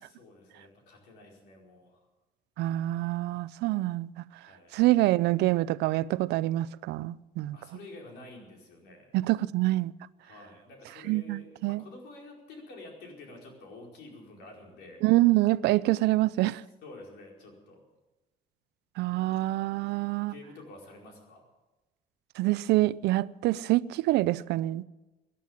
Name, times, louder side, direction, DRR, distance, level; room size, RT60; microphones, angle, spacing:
voice 1, 0.1-2.0 4.4-4.8 7.5-9.1 10.2-15.0 16.8-17.8 20.2-21.5, left 2 dB, 80° left, 4.8 m, -49 dB
voice 2, 2.6-4.1 4.7-7.6 9.1-9.9 11.0-11.8 15.0-16.6 19.0-20.3 22.4-24.8, right 17 dB, 80° right, 0.5 m, -26 dB
18.0 x 11.0 x 7.3 m
cardioid pair, 110°, 17 cm